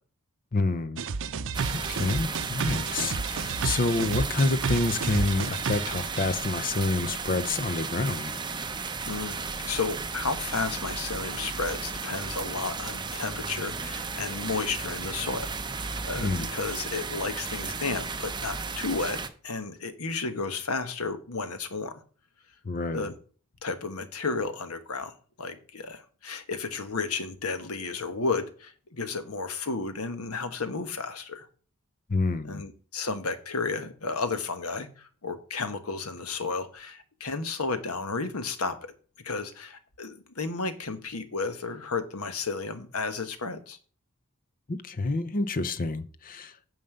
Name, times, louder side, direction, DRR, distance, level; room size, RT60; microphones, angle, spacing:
voice 1, 0.5-1.0 1.7-8.4 16.1-16.5 22.6-23.1 32.1-32.6 44.7-46.5, left 3 dB, 40° left, 0.7 m, -28 dB
sound 1, 1.0-6.3, right 5 dB, 60° right, 0.6 m, -31 dB
sound 2, 1.5-19.3, right 4 dB, 20° right, 0.8 m, -34 dB
voice 2, 9.1-9.4 9.7-22.0 22.9-23.1 23.6-31.5 32.4-43.8, left 4 dB, 85° left, 1.2 m, -33 dB
9.2 x 5.5 x 6.6 m
head